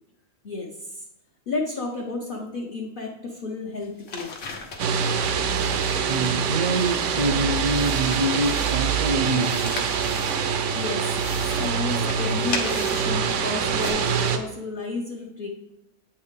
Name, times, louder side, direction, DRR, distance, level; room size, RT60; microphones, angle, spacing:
voice 1, 0.4-1.0 1.5-4.3 10.7-11.2 11.6-15.5, left 3 dB, 45° left, -1 dB, 0.9 m, -32 dB
sound 1, 3.8-5.0 5.5-7.4 7.6-9.0 9.3-10.7 11.0-13.4 13.8-13.9, left 4 dB, 65° left, 1.3 m, -38 dB
sound 2, 4.8-14.4, right 6 dB, 70° right, 1.0 m, -25 dB
voice 2, 6.1-9.9, right 2 dB, 55° right, 3 dB, 0.4 m, -25 dB
8.6 x 4.5 x 3.7 m, 0.90 s
omnidirectional pair, 1.4 m